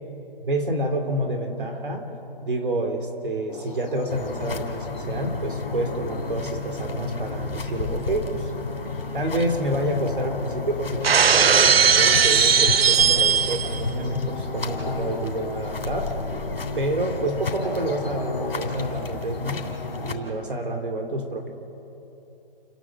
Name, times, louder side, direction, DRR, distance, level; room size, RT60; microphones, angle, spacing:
voice 1, 0.4-2.0 2.4-8.5 9.1-16.1 16.8-19.6 20.0-21.5, right 1 dB, 60° right, 4 dB, 3.2 m, -28 dB
sound 1, 3.5-20.1, left 3 dB, 10° left, 3.8 m, -37 dB
sound 2, 4.1-20.1, left 4 dB, 75° left, 3.6 m, -33 dB
Shatter, 11.0-13.8, right 7 dB, 80° right, 0.8 m, -18 dB
29.5 x 11.0 x 7.8 m, 3.0 s
hypercardioid pair, 180°, 29 cm